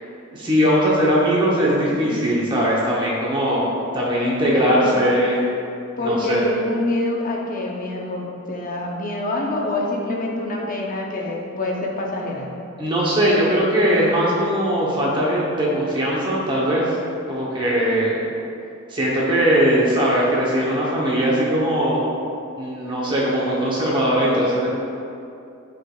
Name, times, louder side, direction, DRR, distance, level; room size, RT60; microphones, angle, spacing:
voice 1, 0.3-5.4 6.0-6.4 12.8-17.0 17.3-18.2 18.9-22.0 22.6-24.7, equal, 20° right, -6 dB, 0.8 m, -20 dB
voice 2, 1.9-2.3 4.5-5.1 6.0-12.5, left 1 dB, 40° left, -2 dB, 0.8 m, -26 dB
9.5 x 5.0 x 2.3 m, 2.6 s
head